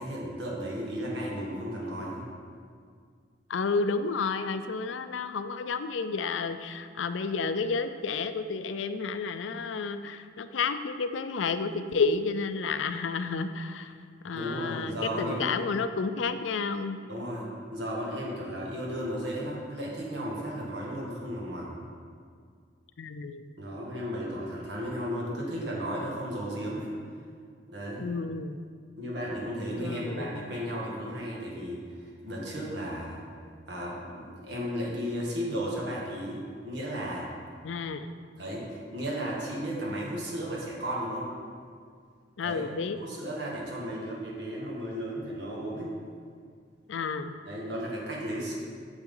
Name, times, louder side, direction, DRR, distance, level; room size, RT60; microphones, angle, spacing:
voice 1, 0.0-2.2 14.3-15.5 17.1-21.7 23.6-26.9 27.7-28.0 29.0-33.2 33.7-37.3 38.4-41.3 42.4-42.6 43.0-45.9 47.4-48.6, equal, 65° right, -4 dB, 1.9 m, -34 dB
voice 2, 3.5-13.9 14.2-17.0 23.0-23.5 28.0-28.6 29.8-30.5 37.6-38.1 42.4-43.0 46.9-47.3, left 4 dB, 90° left, 10 dB, 0.4 m, -31 dB
8.8 x 6.4 x 3.8 m, 2.1 s
head